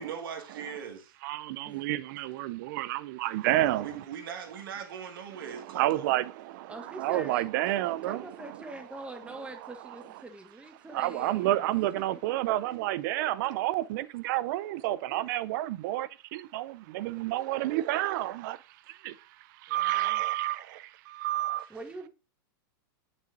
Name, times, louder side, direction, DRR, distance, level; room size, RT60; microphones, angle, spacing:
voice 1, 0.0-1.1 3.8-6.1, right 7 dB, 75° right, 2.0 m, -40 dB
voice 2, 1.2-4.0 5.3-8.6 9.6-10.0 10.9-18.6 19.0-19.1 19.7-21.6, right 15 dB, 60° right, 0.6 m, -30 dB
voice 3, 6.7-7.4 8.1-11.6 12.0-12.1 19.7-20.2 21.7-22.1, right 2 dB, 10° right, 1.4 m, -44 dB
7.5 x 6.3 x 2.7 m
hypercardioid pair, 115°, 12 cm